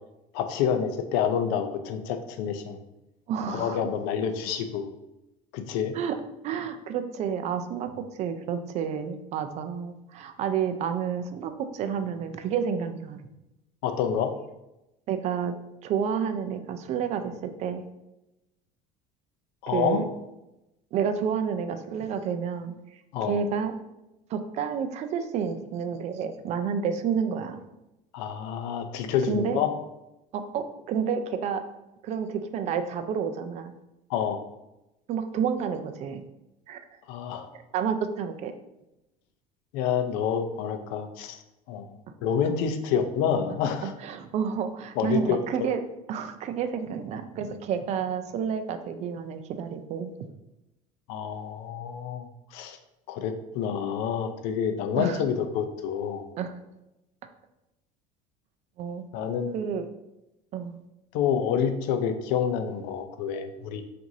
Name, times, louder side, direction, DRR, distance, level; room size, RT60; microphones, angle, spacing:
voice 1, 0.3-2.8 3.5-4.9 5.5-5.9 13.8-14.3 19.6-20.0 23.1-23.4 28.1-29.7 34.1-34.4 37.1-37.5 39.7-41.4 41.7-41.9 42.2-43.9 45.0-45.7 51.1-52.8 53.1-56.2 59.1-59.6 61.1-63.8, left 7 dB, 75° left, 8 dB, 0.5 m, -28 dB
voice 2, 3.3-3.8 5.9-6.2 6.4-13.2 15.1-15.5 15.8-17.8 19.7-20.1 20.9-22.7 23.2-23.7 24.3-27.6 29.2-29.6 30.3-31.6 32.0-33.7 35.1-36.2 36.7-36.8 37.5-38.5 42.1-42.2 43.8-45.8 46.1-50.1 55.0-55.2 56.4-56.6 58.8-59.0 59.5-59.9 60.5-60.8, right 7 dB, 40° right, 8 dB, 0.4 m, -30 dB
5.9 x 2.6 x 2.7 m, 0.93 s
cardioid pair, 150°, 17 cm